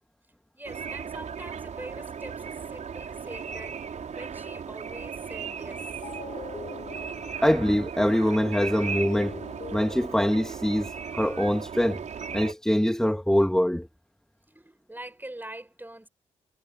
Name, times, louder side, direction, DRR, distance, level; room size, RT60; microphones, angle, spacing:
voice 1, 0.5-5.9 14.5-16.1, right 1 dB, 15° right, 7.1 m, -43 dB
sound 1, 0.6-12.5, right 6 dB, 60° right, 4.8 m, -37 dB
sound 2, 6.0-7.7 8.7-10.4, left 6 dB, 55° left, 3.9 m, -43 dB
voice 2, 7.4-9.4 9.7-12.0 12.3-13.9, equal, 5° left, 2.7 m, -24 dB
hypercardioid pair, 45°, 14 cm